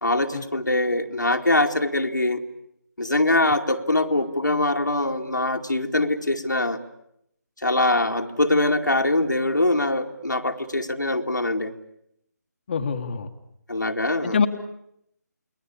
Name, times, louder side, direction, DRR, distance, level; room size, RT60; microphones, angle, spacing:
voice 1, 0.0-2.4 3.0-6.8 7.6-11.7 13.7-14.4, left 2 dB, 85° left, 4 dB, 2.5 m, -23 dB
voice 2, 12.7-13.3 14.2-14.5, left 5 dB, 35° left, 5 dB, 1.6 m, -24 dB
29.0 x 21.5 x 8.8 m, 0.76 s
figure-of-eight pair, 155°, 10 cm